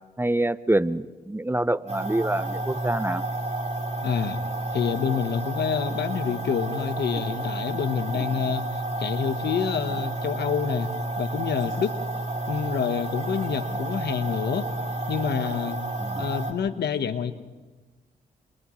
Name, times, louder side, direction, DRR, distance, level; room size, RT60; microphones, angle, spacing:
voice 1, 0.0-3.2 16.0-16.2, right 1 dB, 15° right, 15 dB, 0.6 m, -26 dB
sound 1, 1.9-16.5, right 2 dB, 40° right, 4.0 m, -30 dB
voice 2, 4.0-4.4 4.7-10.9 11.2-12.0 12.5-14.7 15.1-15.8 16.2-17.3, left 7 dB, 75° left, 10 dB, 1.3 m, -27 dB
30.0 x 28.0 x 3.2 m, 1.3 s
supercardioid pair, 55°, 17 cm